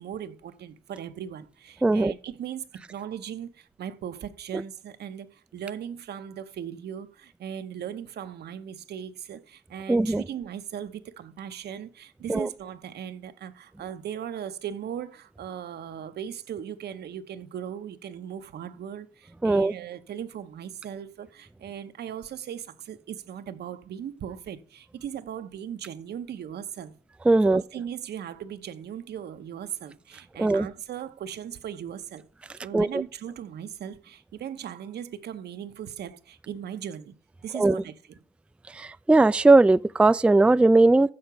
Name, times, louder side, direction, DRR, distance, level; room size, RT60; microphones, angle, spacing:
voice 1, 0.0-26.9 27.4-32.3 32.6-37.1 37.4-37.9, right 9 dB, 70° right, 0.8 m, -38 dB
voice 2, 1.8-2.1 9.9-10.2 12.3-12.5 19.4-19.7 27.3-27.6 30.4-30.7 32.7-32.9 37.5-37.8 38.8-41.1, right 2 dB, 5° right, 0.3 m, -19 dB
6.6 x 6.4 x 5.7 m
supercardioid pair, 50°, 17 cm